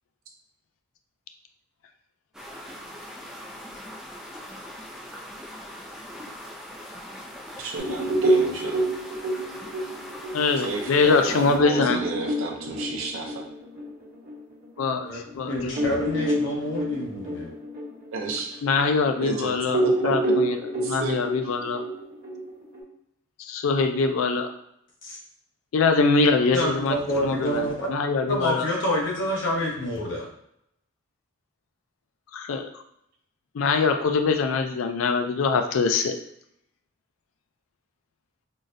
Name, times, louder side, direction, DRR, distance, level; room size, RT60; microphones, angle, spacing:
sound 1, 2.3-11.6, equal, 5° right, 0.3 m, -41 dB
voice 1, 7.6-8.9 10.6-13.5 18.1-18.6 19.2-19.5 19.8-20.1 20.8-21.2, right 3 dB, 75° right, 2 dB, 0.6 m, -32 dB
sound 2, 7.8-14.8 15.3-15.4 15.7-19.3 19.7-22.8, right 1 dB, 45° right, 1.0 m, -27 dB
voice 2, 10.3-12.0 14.8-15.6 18.6-21.8 23.4-24.5 25.7-27.0 27.2-27.6 27.9-28.7 32.3-32.8 33.5-36.2, left 4 dB, 80° left, 6 dB, 0.4 m, -23 dB
voice 3, 15.5-17.5 25.0-25.2 26.5-27.9 28.3-30.3, equal, 60° left, -2 dB, 0.8 m, -27 dB
3.8 x 2.1 x 2.5 m, 0.74 s
head